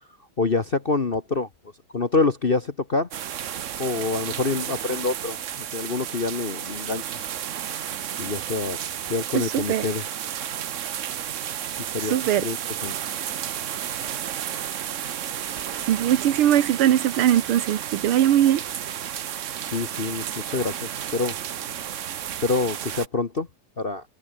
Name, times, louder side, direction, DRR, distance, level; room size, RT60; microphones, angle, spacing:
voice 1, 0.4-1.5 1.9-3.1 3.8-5.4 5.7-7.0 8.2-8.8 9.1-10.0 11.9-12.6 12.8-12.9 19.6-21.3 22.4-23.5 23.8-24.0, left 3 dB, 35° left, 1.0 m, -26 dB
sound 1, 3.1-23.1, right 10 dB, 65° right, 0.7 m, -32 dB
voice 2, 9.3-9.9 12.0-12.5 15.9-18.6, right 11 dB, 80° right, 2.0 m, -20 dB
omnidirectional pair, 2.4 m